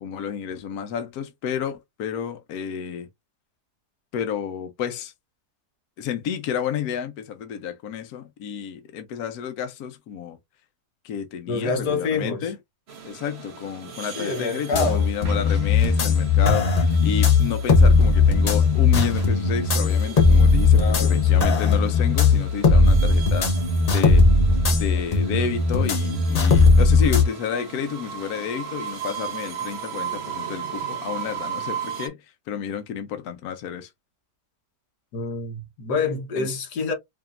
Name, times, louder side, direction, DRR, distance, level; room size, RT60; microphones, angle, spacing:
voice 1, 0.0-3.1 4.1-5.1 6.0-10.4 11.0-12.6 13.0-23.5 23.9-24.3 24.7-33.9 36.4-36.5, left 8 dB, 70° left, 1.1 m, -31 dB
voice 2, 11.5-12.5 14.1-15.1 20.7-21.5 35.1-36.9, left 4 dB, 85° left, 1.6 m, -27 dB
sound 1, 12.9-32.1, right 7 dB, 50° right, 1.0 m, -37 dB
sound 2, 14.7-27.2, left 4 dB, 45° left, 0.5 m, -18 dB
4.9 x 2.7 x 2.4 m
omnidirectional pair, 1.7 m